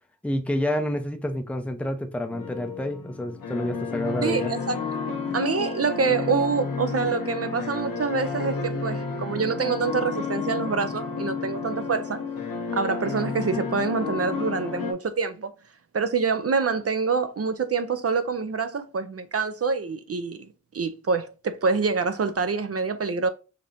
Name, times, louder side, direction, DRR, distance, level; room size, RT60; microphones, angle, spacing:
voice 1, 0.2-4.5, left 1 dB, 5° left, 0.6 m, -28 dB
sound 1, 2.3-14.9, left 5 dB, 80° left, 1.1 m, -31 dB
voice 2, 4.2-4.8 5.3-12.2 12.7-15.5 15.9-20.4 20.7-23.3, right 5 dB, 45° right, 0.5 m, -26 dB
5.1 x 2.8 x 2.6 m
wide cardioid pair, 100°, 33 cm